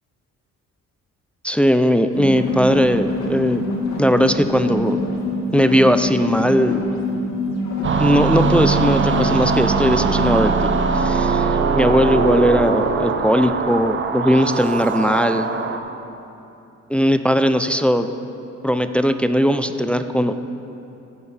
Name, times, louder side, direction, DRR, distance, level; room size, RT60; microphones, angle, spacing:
voice 1, 1.4-3.6 4.0-5.0 5.5-6.8 8.0-15.5 16.9-18.1 18.6-20.4, equal, 5° left, 9 dB, 0.3 m, -18 dB
sound 1, 2.1-10.4, left 2 dB, 65° left, 2.2 m, -25 dB
sound 2, 7.8-15.8, right 5 dB, 40° right, 0.7 m, -21 dB
16.0 x 7.1 x 3.3 m, 3.0 s
cardioid pair, 90°, 30 cm